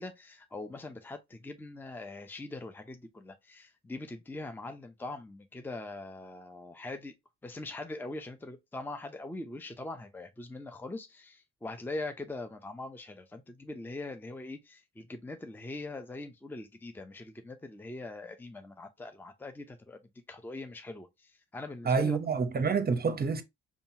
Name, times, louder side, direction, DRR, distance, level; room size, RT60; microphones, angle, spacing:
voice 1, 0.0-7.1 7.4-20.0 20.3-22.2, left 2 dB, 5° left, 0.6 m, -42 dB
voice 2, 21.8-23.4, right 5 dB, 30° right, 0.8 m, -27 dB
5.2 x 2.4 x 2.8 m
hypercardioid pair, 45°, 33 cm